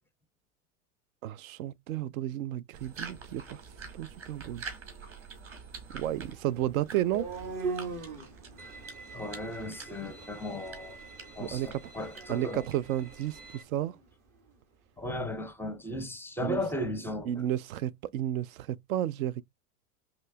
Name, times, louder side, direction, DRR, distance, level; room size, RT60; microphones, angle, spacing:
voice 1, 1.2-3.6 3.9-4.6 5.9-7.3 11.4-11.9 12.3-14.0 16.4-16.6 17.3-19.4, right 12 dB, 65° right, 0.5 m, -32 dB
sound 1, 2.7-13.6, right 5 dB, 30° right, 1.6 m, -47 dB
sound 2, 6.1-14.0, right 4 dB, 50° right, 1.6 m, -42 dB
Bowed string instrument, 8.6-13.6, right 3 dB, 80° right, 1.2 m, -50 dB
voice 2, 9.1-11.0 11.4-12.6 15.0-17.3, left 1 dB, 5° left, 0.5 m, -36 dB
5.1 x 2.9 x 2.2 m
hypercardioid pair, 100°, 45 cm